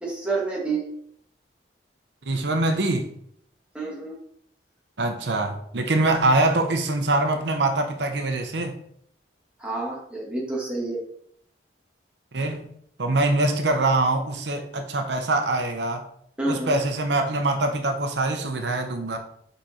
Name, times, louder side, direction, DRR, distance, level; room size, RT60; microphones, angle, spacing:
voice 1, 0.0-0.8 3.7-4.2 9.6-11.0 16.4-16.8, right 3 dB, 5° right, -5 dB, 1.8 m, -28 dB
voice 2, 2.3-3.1 5.0-8.8 12.3-12.7 13.0-16.0 16.5-19.2, right 2 dB, 80° right, 5 dB, 0.9 m, -24 dB
5.6 x 5.0 x 4.3 m, 0.67 s
head